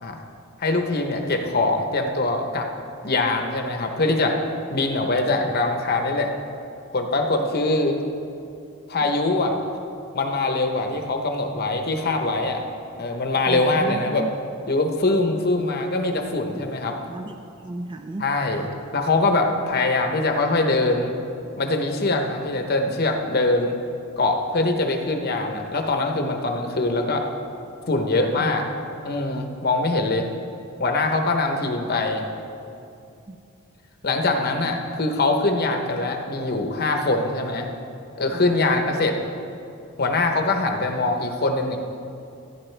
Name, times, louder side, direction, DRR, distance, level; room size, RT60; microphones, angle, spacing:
voice 1, 0.6-2.7 3.0-4.4 4.7-6.3 6.9-8.0 8.9-9.6 10.1-12.6 13.0-14.3 14.7-17.0 18.2-18.7 18.9-21.1 21.6-23.8 24.2-27.2 27.9-28.7 29.0-30.3 30.8-32.2 34.0-37.7 38.2-39.2 40.0-41.8, left 2 dB, 45° left, 4 dB, 0.9 m, -23 dB
voice 2, 13.5-14.3 16.8-18.3 28.4-28.5 33.3-33.4 34.6-34.8 38.3-38.9, right 1 dB, 20° right, 4 dB, 0.3 m, -34 dB
16.5 x 9.8 x 3.3 m, 2.6 s
head